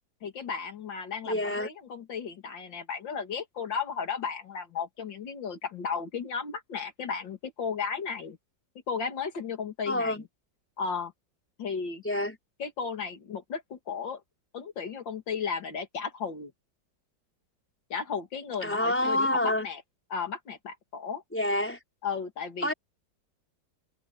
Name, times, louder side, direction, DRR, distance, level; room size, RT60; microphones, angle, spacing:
voice 1, 0.2-8.4 8.9-10.2 10.8-11.1 11.6-12.0 12.6-14.2 14.5-16.5 17.9-19.8 20.1-21.2 22.0-22.7, left 6 dB, 80° left, 2.7 m, -34 dB
voice 2, 1.3-1.7 9.9-10.2 12.0-12.4 18.6-19.7 21.3-21.8 22.6-22.7, left 1 dB, 5° left, 4.3 m, -27 dB
omnidirectional pair, 2.0 m